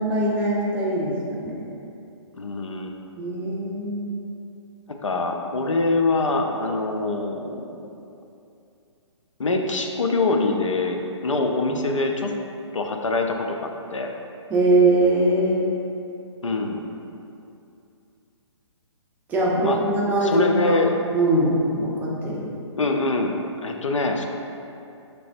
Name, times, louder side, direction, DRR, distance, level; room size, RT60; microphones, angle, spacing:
voice 1, 0.0-1.5 3.1-4.1 11.7-11.8 14.5-15.6 19.3-20.8 21.1-22.6, right 2 dB, 10° right, -6 dB, 0.6 m, -22 dB
voice 2, 2.4-2.9 4.9-7.5 9.4-12.3 12.7-14.1 16.4-16.9 19.6-19.8 20.2-20.9 22.8-23.3 23.6-24.2, left 3 dB, 90° left, 3 dB, 0.5 m, -24 dB
4.8 x 3.3 x 2.5 m, 2.6 s
figure-of-eight pair, 135°, 16 cm